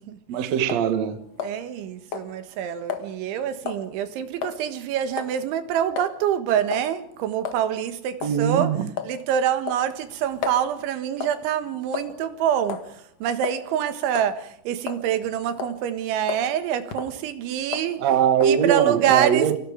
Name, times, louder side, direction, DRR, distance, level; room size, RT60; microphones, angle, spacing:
voice 1, 0.3-1.2 8.2-8.9 18.0-19.6, right 8 dB, 60° right, 1.8 m, -21 dB
sound 1, 0.7-0.9 1.4-1.8 2.1-2.3 2.9-3.1 3.7-3.9 4.4-4.6 5.2-5.4 6.0-6.1 6.7-6.9 7.4-7.6 8.2-8.4 9.0-9.2 9.7-10.6 11.2-11.4 11.9-12.3 12.7-12.9 13.4-13.6 14.1-14.3 14.9-15.3 15.6-15.8 16.3-16.5 16.9-17.2 17.7-17.9 18.4-18.6, left 7 dB, 50° left, 2.0 m, -32 dB
voice 2, 1.4-8.8 9.0-18.0 18.4-19.6, right 9 dB, 90° right, 3.9 m, -26 dB
29.5 x 24.5 x 5.1 m
omnidirectional pair, 5.3 m